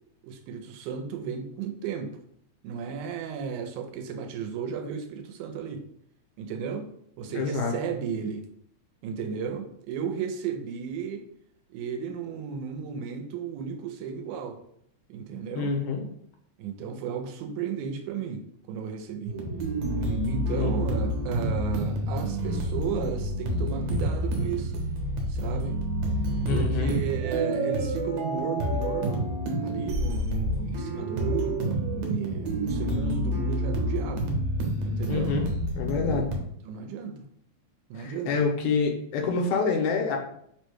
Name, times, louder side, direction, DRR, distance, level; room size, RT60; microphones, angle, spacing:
voice 1, 0.2-2.2 2.6-5.9 6.4-6.9 7.2-8.5 9.0-11.3 11.7-14.6 15.1-15.7 16.6-19.4 20.0-24.8 25.3-25.8 26.5-29.3 29.6-31.6 31.9-34.3 34.8-35.3 36.1-36.3 36.6-37.2 37.9-38.3, right 6 dB, 85° right, 5 dB, 2.0 m, -34 dB
voice 2, 7.3-7.7 15.6-16.0 20.5-20.8 26.5-26.9 35.1-35.5 35.8-36.3 38.0-40.2, left 4 dB, 80° left, 2 dB, 2.1 m, -27 dB
sound 1, 19.3-36.4, right 1 dB, 70° right, 1.9 m, -28 dB
4.8 x 2.2 x 4.5 m, 0.70 s
omnidirectional pair, 3.4 m